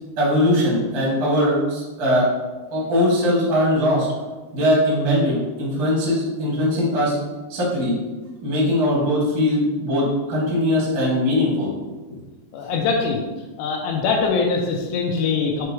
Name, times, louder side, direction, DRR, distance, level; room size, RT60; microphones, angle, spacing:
voice 1, 0.2-2.3 2.7-4.1 4.5-7.1 7.5-7.9 8.4-11.7, left 1 dB, 40° right, -5 dB, 1.4 m, -20 dB
voice 2, 12.5-13.2 13.6-15.7, left 4 dB, 85° left, 0 dB, 2.8 m, -22 dB
6.9 x 3.2 x 4.6 m, 1.2 s
omnidirectional pair, 4.7 m